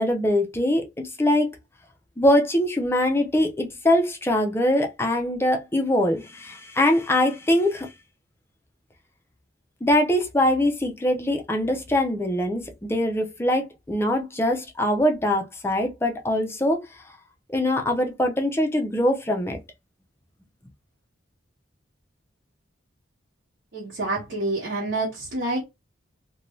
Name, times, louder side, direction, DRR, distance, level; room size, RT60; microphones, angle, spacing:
voice 1, 0.0-1.5 2.2-7.9 9.8-16.9 17.5-19.6, left 1 dB, 15° left, 0.4 m, -23 dB
voice 2, 23.7-25.6, right 2 dB, 60° right, 1.0 m, -27 dB
2.6 x 2.2 x 3.0 m
head